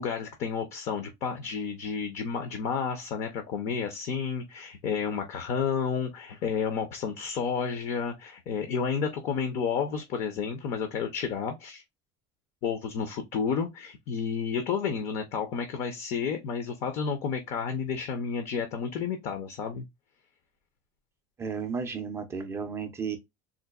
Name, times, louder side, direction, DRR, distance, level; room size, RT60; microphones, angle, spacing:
voice 1, 0.0-11.8 12.6-19.8, left 6 dB, 40° left, 0.6 m, -31 dB
voice 2, 21.4-23.2, right 6 dB, 15° right, 0.4 m, -33 dB
3.8 x 2.5 x 2.3 m
cardioid pair, 175°, 17 cm